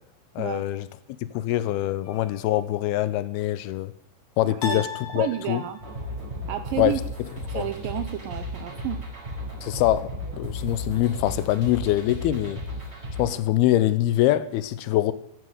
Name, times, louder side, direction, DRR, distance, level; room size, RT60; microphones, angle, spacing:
voice 1, 0.4-0.9 1.3-3.9 4.4-4.9 5.1-5.6 6.8-7.0 7.5-7.6 9.6-12.6 13.2-15.1, left 14 dB, 80° left, 2.6 m, -24 dB
sound 1, 2.0-2.7 4.6-6.1, left 5 dB, 50° left, 3.5 m, -36 dB
voice 2, 4.4-4.9 5.2-5.8 6.5-7.0 7.4-9.0, right 12 dB, 75° right, 2.1 m, -31 dB
sound 2, 5.8-13.3, left 1 dB, 15° right, 4.7 m, -34 dB
14.0 x 11.5 x 8.0 m
omnidirectional pair, 4.6 m